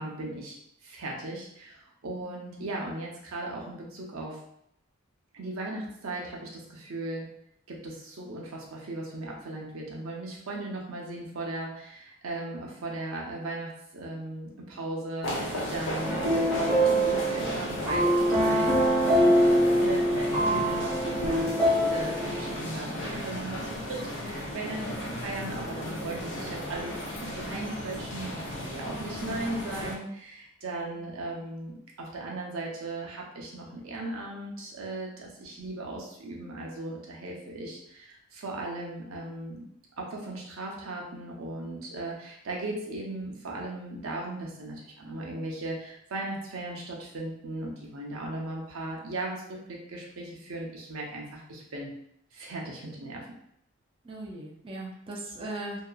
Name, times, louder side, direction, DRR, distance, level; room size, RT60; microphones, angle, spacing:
voice 1, 0.0-4.4 5.3-7.3 7.7-39.6 40.0-51.9 52.3-53.3, right 2 dB, 80° right, -1 dB, 0.6 m, -37 dB
voice 2, 2.2-2.6 30.9-31.1 54.0-55.9, right 2 dB, 25° right, -3 dB, 0.4 m, -40 dB
sound 1, 15.2-29.9, equal, 60° left, 0.6 m, -35 dB
sound 2, 16.0-22.5, equal, 15° left, 1.0 m, -24 dB
2.7 x 2.3 x 2.3 m, 0.73 s
head